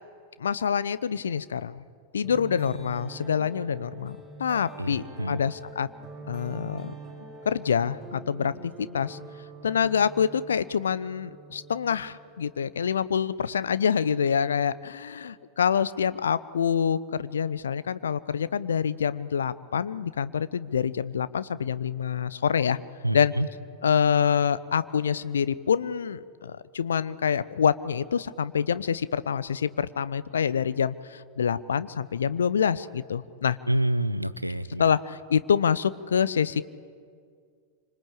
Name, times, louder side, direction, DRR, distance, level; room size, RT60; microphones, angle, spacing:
voice 1, 0.4-1.8 2.1-5.9 6.3-6.9 7.4-9.2 9.6-22.8 23.1-23.3 23.8-33.6 34.8-36.6, left 7 dB, 70° left, 15 dB, 0.8 m, -26 dB
sound 1, 2.2-12.8, right 3 dB, 5° left, 6.2 m, -44 dB
voice 2, 4.8-5.4 23.0-23.5 33.7-34.9, right 1 dB, 90° right, 15 dB, 0.9 m, -27 dB
27.0 x 25.5 x 8.5 m, 2.1 s
figure-of-eight pair, 90°, 0 cm